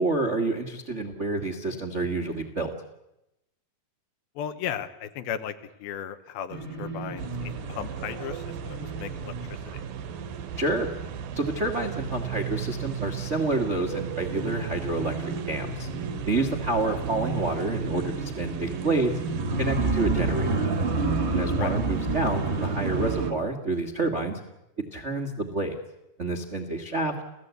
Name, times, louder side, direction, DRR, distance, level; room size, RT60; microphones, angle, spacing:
voice 1, 0.0-2.7 10.6-10.9 11.3-15.9 16.2-19.2 19.6-20.6 21.3-24.4 24.9-25.8 26.2-27.1, right 2 dB, 60° right, 4 dB, 0.7 m, -28 dB
voice 2, 4.4-9.9 16.9-17.0 21.6-21.7, left 9 dB, 80° left, 9 dB, 3.0 m, -36 dB
sound 1, 6.5-13.5 13.8-23.3, right 3 dB, 35° right, 1.0 m, -31 dB
sound 2, 7.2-23.3, right 9 dB, 75° right, 2.7 m, -37 dB
29.0 x 16.5 x 8.2 m, 0.91 s
omnidirectional pair, 4.3 m